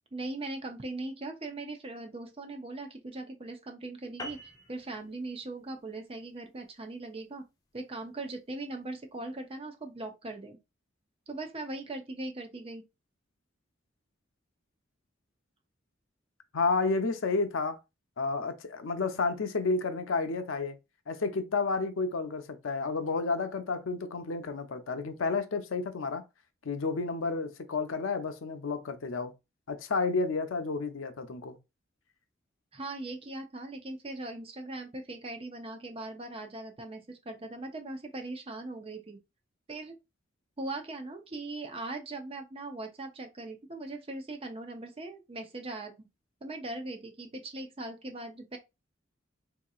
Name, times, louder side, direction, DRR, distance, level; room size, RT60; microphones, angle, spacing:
voice 1, 0.1-7.4 7.7-10.6 11.3-12.8 32.7-39.2 39.7-40.0 40.6-46.1 46.4-48.6, right 2 dB, 30° right, 0.5 m, -40 dB
sound 1, 4.2-8.9, equal, 20° left, 0.5 m, -48 dB
voice 2, 16.5-17.8 18.2-20.8 21.1-26.2 26.6-29.3 29.7-31.6, left 4 dB, 85° left, 0.5 m, -31 dB
3.7 x 2.8 x 2.3 m
head